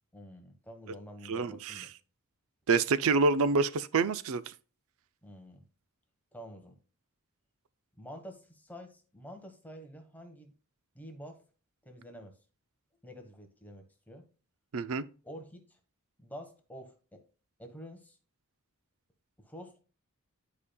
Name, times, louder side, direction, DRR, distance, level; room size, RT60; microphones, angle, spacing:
voice 1, 0.1-1.9 5.2-5.6 6.3-6.7 8.0-10.5 10.9-11.4 11.8-12.3 13.0-14.3 15.2-15.8 16.2-17.2 17.6-18.2 19.4-19.8, equal, 10° left, 1.2 m, -48 dB
voice 2, 1.3-1.8 2.7-4.4 14.7-15.0, right 4 dB, 65° right, 0.5 m, -27 dB
11.0 x 5.1 x 2.3 m
head